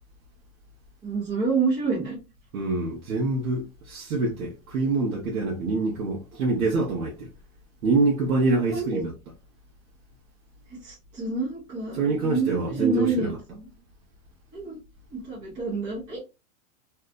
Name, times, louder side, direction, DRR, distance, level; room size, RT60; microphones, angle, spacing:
voice 1, 1.0-2.2 8.7-9.0 10.7-13.7 14.5-14.8 15.1-16.2, right 4 dB, 10° right, 0.5 m, -28 dB
voice 2, 2.5-7.3 7.8-9.1 11.9-13.4, right 3 dB, 80° right, 0.9 m, -25 dB
2.7 x 2.3 x 2.3 m
hypercardioid pair, 160°, 42 cm